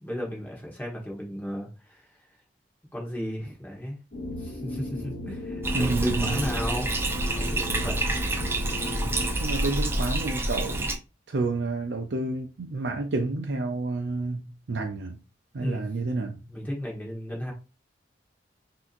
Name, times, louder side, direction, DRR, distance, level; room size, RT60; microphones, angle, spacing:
voice 1, 0.0-2.1 2.9-4.0 4.4-6.9 7.3-8.0 15.6-15.9 16.5-17.5, equal, 10° left, 1.3 m, -34 dB
sound 1, 4.1-9.3, left 1 dB, 50° left, 1.3 m, -36 dB
Bathtub (filling or washing), 5.6-10.9, right 1 dB, 15° right, 0.5 m, -28 dB
voice 2, 5.7-6.4 9.4-11.0 11.3-15.2 15.5-16.4, right 3 dB, 70° right, 0.5 m, -30 dB
5.9 x 2.8 x 2.5 m
head